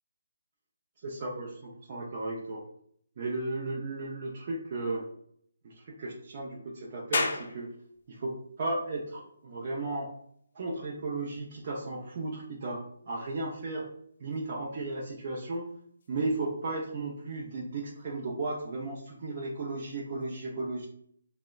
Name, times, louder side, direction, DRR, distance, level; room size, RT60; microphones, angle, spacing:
voice 1, 1.0-2.6 3.2-5.0 5.6-7.7 8.1-10.1 10.5-13.9 14.2-15.7 16.1-20.9, right 2 dB, 40° right, -3 dB, 0.5 m, -35 dB
sound 1, 7.1-20.2, left 3 dB, 50° left, 0.5 m, -42 dB
3.5 x 2.1 x 2.3 m, 0.67 s
figure-of-eight pair, 155°, 0 cm